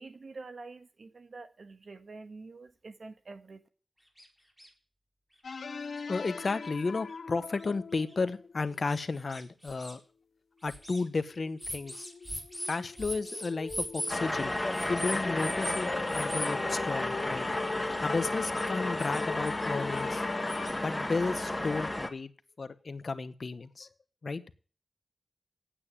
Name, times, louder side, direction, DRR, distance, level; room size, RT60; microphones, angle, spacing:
voice 1, 0.0-3.6, right 3 dB, 65° right, 9 dB, 1.4 m, -47 dB
sound 1, 4.2-4.3 4.6-4.7 5.5-5.6 5.9-6.0 6.6-6.7 7.6-7.7 8.1-8.2 8.9-9.9 10.6-11.0 11.6-14.2 14.7-15.8 16.1-16.5 18.3-18.7 19.0-19.7 19.9-20.7, equal, 10° right, 4.1 m, -39 dB
sound 2, 5.4-8.9 10.6-10.7 11.3-20.7, left 5 dB, 75° left, 0.5 m, -41 dB
voice 2, 6.1-10.0 10.6-12.1 12.7-14.5 14.9-17.5 18.0-20.2 20.8-22.3 22.6-23.9 24.2-24.4, left 3 dB, 60° left, 12 dB, 1.0 m, -33 dB
sound 3, 14.1-22.1, left 1 dB, 20° left, 1.5 m, -32 dB
8.9 x 8.8 x 8.7 m, 0.40 s
cardioid pair, 60°, 0 cm